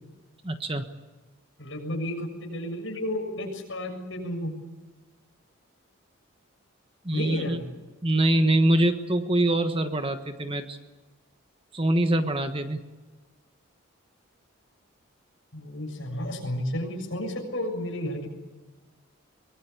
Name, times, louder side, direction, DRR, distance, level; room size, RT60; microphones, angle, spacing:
voice 1, 0.4-0.9 7.0-7.6 8.0-10.8 11.7-12.8, right 1 dB, 25° right, 7 dB, 1.3 m, -24 dB
voice 2, 1.6-4.5 7.1-7.6 15.5-18.3, left 1 dB, 60° left, 2 dB, 7.1 m, -32 dB
23.5 x 20.5 x 8.4 m, 1.2 s
head